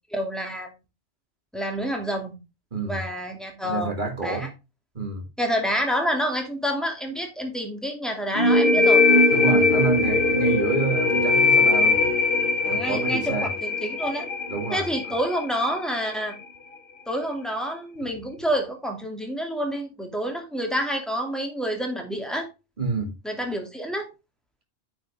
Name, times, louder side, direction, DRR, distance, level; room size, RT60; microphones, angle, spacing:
voice 1, 0.1-0.7 1.5-2.3 2.8-3.9 4.2-4.5 5.4-9.0 12.6-14.3 14.7-16.3 17.1-22.5 23.2-24.1, equal, ahead, 2.6 m, -28 dB
voice 2, 2.7-3.0 3.6-4.5 4.9-5.3 9.3-12.0 12.7-13.5 14.5-14.9 22.8-23.1, right 4 dB, 50° right, 2.5 m, -28 dB
sound 1, 8.4-15.8, left 3 dB, 60° left, 1.1 m, -21 dB
9.2 x 6.3 x 3.6 m
omnidirectional pair, 1.0 m